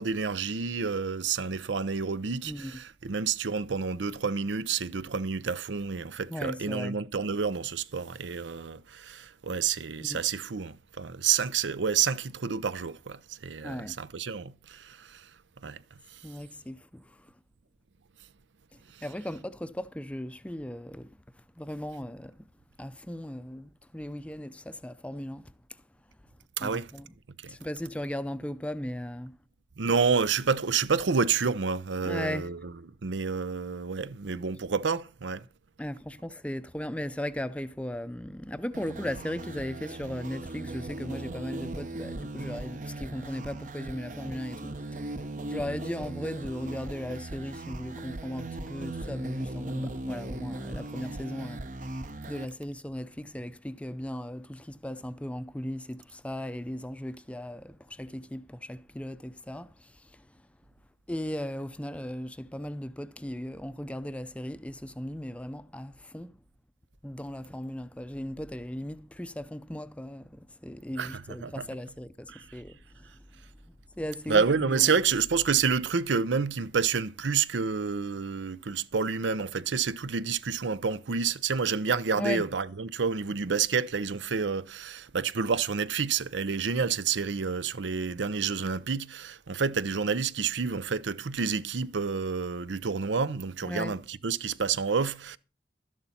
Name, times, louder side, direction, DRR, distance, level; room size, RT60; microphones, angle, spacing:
voice 1, 0.0-15.3 15.6-15.8 18.9-19.0 26.6-26.9 27.4-27.6 29.8-32.6 33.0-35.5 71.0-71.7 72.3-72.6 74.3-95.4, right 5 dB, 90° right, 0.6 m, -29 dB
voice 2, 6.3-7.0 10.0-10.2 13.6-14.0 16.2-17.3 19.0-22.5 22.8-25.8 26.6-27.1 27.5-29.4 32.0-32.5 35.8-60.3 61.1-66.4 67.0-73.1 74.0-74.9 82.2-82.4 93.6-94.0, left 1 dB, 5° left, 0.5 m, -37 dB
sound 1, 38.7-52.5, right 2 dB, 45° right, 0.7 m, -38 dB
12.5 x 11.0 x 4.3 m
head